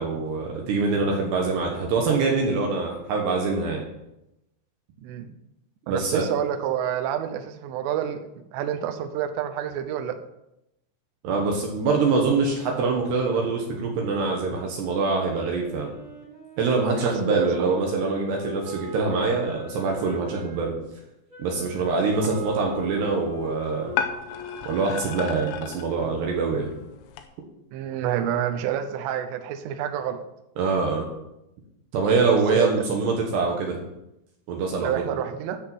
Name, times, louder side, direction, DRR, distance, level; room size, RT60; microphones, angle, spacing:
voice 1, 0.0-3.8 5.9-6.3 11.2-15.9 16.6-20.8 21.4-23.9 24.7-26.7 30.6-31.1 31.9-33.8 34.5-35.0, right 4 dB, 65° right, 0 dB, 3.3 m, -24 dB
voice 2, 5.9-8.2 8.5-10.2 17.0-17.7 27.7-30.2 32.5-32.8 34.8-35.6, right 10 dB, 85° right, 8 dB, 3.4 m, -28 dB
Wind instrument woodwind instrument, 14.7-20.6 21.3-27.1, left 1 dB, 30° right, 3.3 m, -40 dB
sound 1, 22.1-27.3, left 8 dB, 90° left, 3.6 m, -35 dB
13.5 x 5.4 x 7.2 m, 0.86 s
omnidirectional pair, 5.6 m